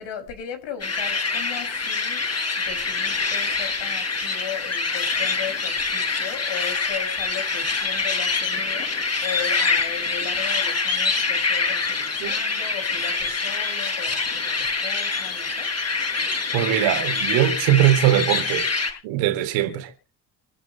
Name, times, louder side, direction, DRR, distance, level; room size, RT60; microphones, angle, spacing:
voice 1, 0.0-15.9, left 8 dB, 60° left, 6.6 m, -37 dB
sound 1, 0.8-18.9, left 4 dB, 30° left, 7.6 m, -25 dB
voice 2, 16.5-18.7 19.0-19.9, right 12 dB, 65° right, 3.9 m, -21 dB
29.0 x 10.0 x 3.3 m
figure-of-eight pair, 50°, 49 cm